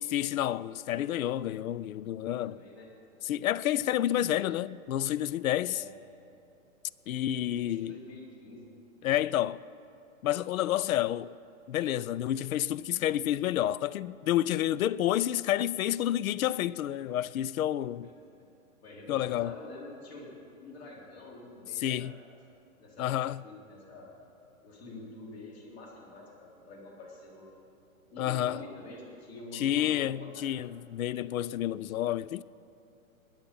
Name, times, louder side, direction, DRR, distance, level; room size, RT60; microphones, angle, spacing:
voice 1, 0.1-2.6 3.2-5.8 7.1-8.0 9.0-9.6 10.2-11.3 11.7-18.1 19.1-19.6 21.8-22.1 23.0-23.4 28.2-28.6 29.5-32.4, left 12 dB, 75° left, 0.5 m, -29 dB
voice 2, 2.2-2.9 5.6-5.9 7.3-8.7 18.0-18.1 18.8-20.3 20.6-22.2 22.8-23.1 23.4-24.1 24.6-27.5 28.1-30.7, left 2 dB, 45° left, 4.0 m, -47 dB
20.0 x 10.5 x 5.4 m
hypercardioid pair, 160°, 43 cm